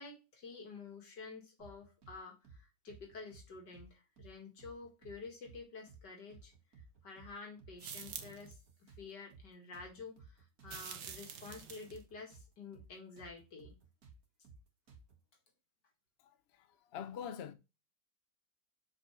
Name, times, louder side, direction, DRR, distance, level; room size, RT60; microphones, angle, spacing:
voice 1, 0.0-6.5 7.0-8.6 9.0-13.7, left 4 dB, 75° left, 2.6 m, -50 dB
sound 1, 1.6-2.2 2.4-2.6 2.9-3.9 4.2-4.3 4.6-5.6 5.9-6.0 6.3-7.3 7.6-7.8 8.0-9.5 9.7-12.5 12.7-12.9 13.2-15.2, right 4 dB, 55° right, 2.1 m, -57 dB
sound 2, 7.8-8.5 10.7-12.0, right 7 dB, 75° right, 1.6 m, -47 dB
voice 2, 16.2-17.5, left 8 dB, 60° left, 0.7 m, -45 dB
6.2 x 5.1 x 3.2 m
omnidirectional pair, 1.9 m